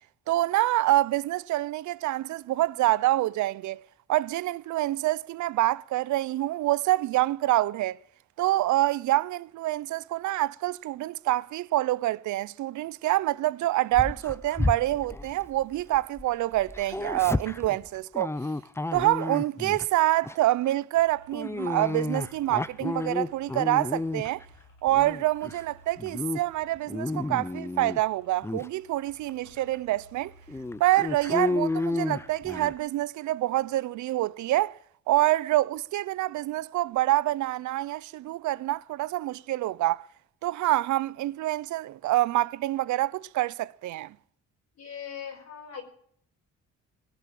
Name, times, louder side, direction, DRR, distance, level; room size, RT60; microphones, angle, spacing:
voice 1, 0.3-3.8 4.1-8.0 8.4-18.3 18.9-24.4 24.8-30.3 30.8-34.8 35.1-40.1 40.4-44.1, right 16 dB, 75° right, 0.5 m, -26 dB
Dog, 13.9-16.3 16.5-19.9 20.2-20.5 21.3-24.4 24.9-25.6 26.0-26.4 26.8-28.0 28.4-28.7 29.3-29.4 29.7-29.8 30.5-32.8, left 2 dB, 10° left, 0.5 m, -31 dB
sound 1, 21.0-32.4, right 1 dB, 75° left, 4.3 m, -56 dB
voice 2, 44.8-45.8, left 8 dB, 60° left, 4.8 m, -39 dB
20.5 x 8.3 x 7.5 m
cardioid pair, 90°, 30 cm